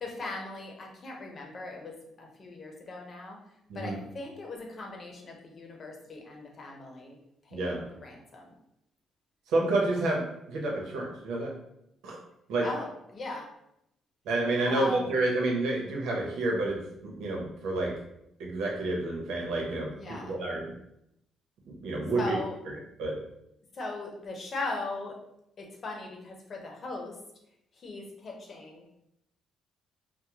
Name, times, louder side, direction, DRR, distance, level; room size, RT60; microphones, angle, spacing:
voice 1, 0.0-3.4 3.7-7.2 7.4-7.8 8.0-8.5 12.6-13.5 14.7-15.0 19.9-20.4 22.1-22.6 23.7-25.2 25.6-27.2 27.7-28.8, left 2 dB, 50° left, 0 dB, 0.8 m, -39 dB
voice 2, 7.5-7.8 9.5-11.5 12.0-12.2 12.5-12.7 14.2-17.9 18.4-20.7 21.6-22.4 23.0-23.1, right 2 dB, 90° right, -1 dB, 0.8 m, -29 dB
3.6 x 2.1 x 2.9 m, 0.79 s
cardioid pair, 90°, 0 cm